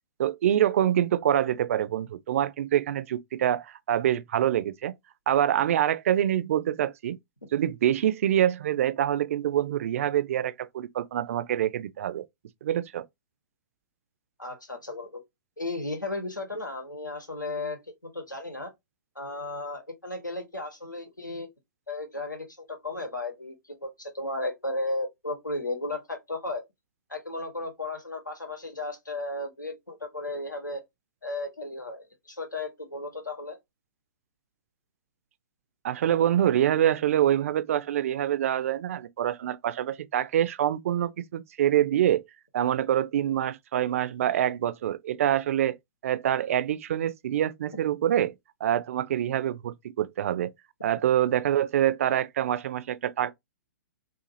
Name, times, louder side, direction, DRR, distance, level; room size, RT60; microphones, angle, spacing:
voice 1, 0.2-4.9 5.3-7.2 7.5-12.3 12.6-13.0 35.8-42.2 42.5-45.8 46.0-48.3 48.6-50.5 50.8-53.3, right 11 dB, 50° right, 0.3 m, -25 dB
voice 2, 14.4-15.2 15.6-18.7 19.1-21.5 21.9-26.6 27.1-30.8 31.2-33.6, left 2 dB, 90° left, 1.0 m, -34 dB
2.5 x 2.5 x 2.6 m
figure-of-eight pair, 115°, 10 cm